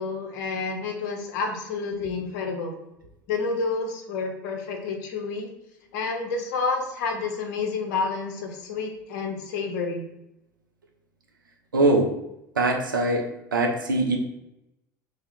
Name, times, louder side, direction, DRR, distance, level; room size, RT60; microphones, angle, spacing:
voice 1, 0.0-2.7 3.3-5.5 5.9-10.0, left 4 dB, 60° left, 2 dB, 0.8 m, -29 dB
voice 2, 11.7-12.1 12.6-13.3 13.5-14.2, right 2 dB, 80° right, 2 dB, 0.7 m, -22 dB
3.3 x 2.7 x 4.2 m, 0.86 s
figure-of-eight pair, 75°, 11 cm